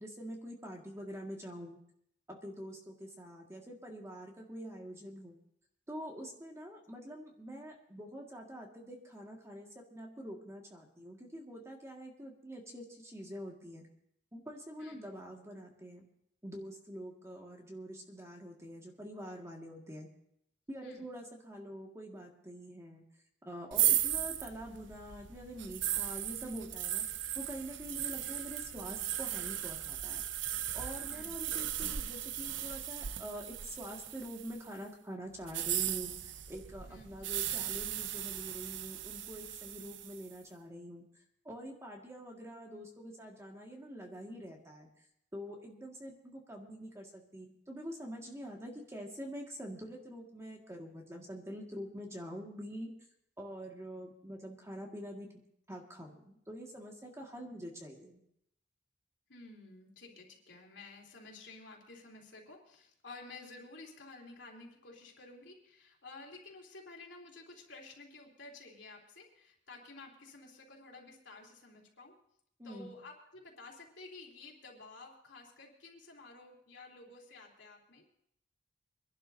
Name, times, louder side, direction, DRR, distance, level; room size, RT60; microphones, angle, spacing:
voice 1, 0.0-1.8 2.3-5.4 5.9-13.9 14.3-16.0 16.4-20.1 20.7-23.1 23.4-27.1 27.3-30.2 30.7-41.0 41.4-44.9 45.3-52.9 53.4-55.4 55.7-58.2 72.6-72.9, equal, 15° right, 0 dB, 1.8 m, -45 dB
sound 1, 23.7-34.7 35.4-40.3, right 11 dB, 80° right, 0.7 m, -36 dB
voice 2, 59.3-72.1 72.6-78.0, left 3 dB, 75° left, -1 dB, 3.1 m, -52 dB
25.5 x 11.5 x 2.7 m, 0.72 s
head